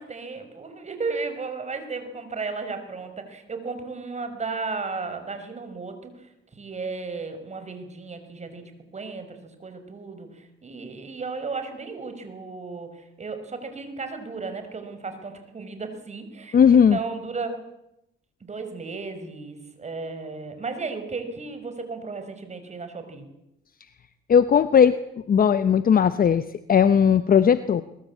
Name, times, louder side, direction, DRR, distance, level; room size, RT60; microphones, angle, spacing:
voice 1, 0.0-6.3 6.6-16.6 16.9-17.6 18.4-23.3, right 4 dB, 35° right, 8 dB, 5.5 m, -34 dB
voice 2, 16.5-17.0 24.3-24.9 25.3-27.8, left 7 dB, 45° left, 13 dB, 0.9 m, -17 dB
22.5 x 22.0 x 8.6 m, 0.85 s
cardioid pair, 90°, 20 cm